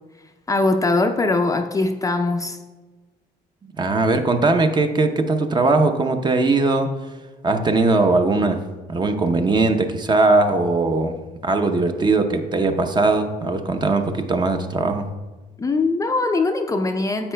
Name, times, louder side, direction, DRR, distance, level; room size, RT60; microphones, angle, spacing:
voice 1, 0.5-2.6 15.6-17.3, left 3 dB, 20° left, 5 dB, 0.5 m, -21 dB
voice 2, 3.8-6.9 7.4-8.6 8.9-15.1, right 3 dB, 25° right, 6 dB, 0.6 m, -20 dB
10.0 x 7.7 x 2.2 m, 1.2 s
cardioid pair, 110°, 17 cm